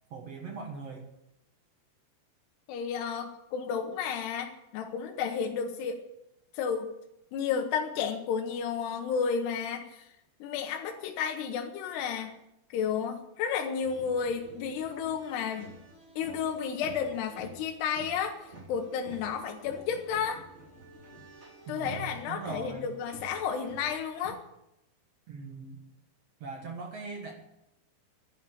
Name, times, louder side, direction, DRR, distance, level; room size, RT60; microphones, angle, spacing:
voice 1, 0.1-1.1 21.7-22.9 25.3-25.8 26.4-27.4, right 4 dB, 70° right, 2 dB, 1.5 m, -40 dB
voice 2, 2.7-6.0 6.5-6.9 7.3-10.1 10.4-12.3 12.7-15.7 16.2-18.4 18.7-20.4 21.7-24.4, left 7 dB, 75° left, 2 dB, 2.9 m, -32 dB
sound 1, 13.8-24.3, right 2 dB, 20° right, 2.0 m, -50 dB
11.0 x 11.0 x 8.6 m, 0.87 s
omnidirectional pair, 5.1 m